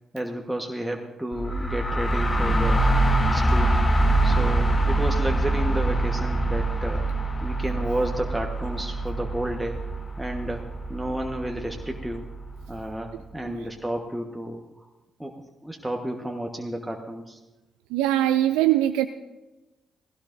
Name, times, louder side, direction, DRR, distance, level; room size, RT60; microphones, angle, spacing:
voice 1, 0.1-2.8 3.3-3.7 4.2-7.0 7.4-9.8 10.2-10.6 10.9-12.3 12.7-14.9 15.2-15.3 15.6-17.4, right 1 dB, 5° right, 1 dB, 1.3 m, -31 dB
sound 1, 1.3-13.0, right 1 dB, 30° left, 1.5 m, -24 dB
voice 2, 17.9-19.1, right 13 dB, 80° right, 9 dB, 0.3 m, -22 dB
17.5 x 16.5 x 2.7 m, 1.0 s
hypercardioid pair, 45°, 0 cm